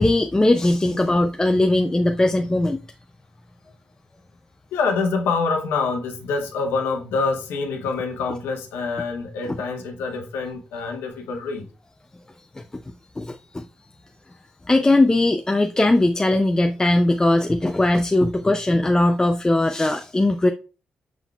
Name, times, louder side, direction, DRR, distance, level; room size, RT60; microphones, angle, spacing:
voice 1, 0.0-2.8 9.5-9.6 13.2-13.6 14.7-20.5, left 2 dB, 20° left, 0.4 m, -19 dB
voice 2, 4.7-11.7, left 4 dB, 90° left, 0.8 m, -26 dB
6.0 x 3.8 x 2.3 m
supercardioid pair, 50°, 4 cm